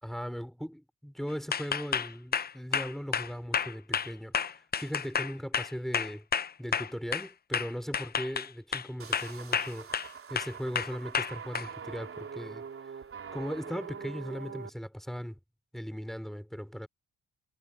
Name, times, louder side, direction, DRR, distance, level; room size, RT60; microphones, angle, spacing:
voice 1, 0.0-6.3 6.6-9.9 10.3-13.0 13.3-15.4 15.7-16.9, equal, ahead, 4.2 m, -38 dB
sound 1, 1.5-7.3 7.5-8.9 9.1-10.1 10.4-11.7, left 7 dB, 30° left, 0.7 m, -30 dB
sound 2, 9.0-14.7, right 6 dB, 45° right, 4.0 m, -43 dB
cardioid pair, 90°, 30 cm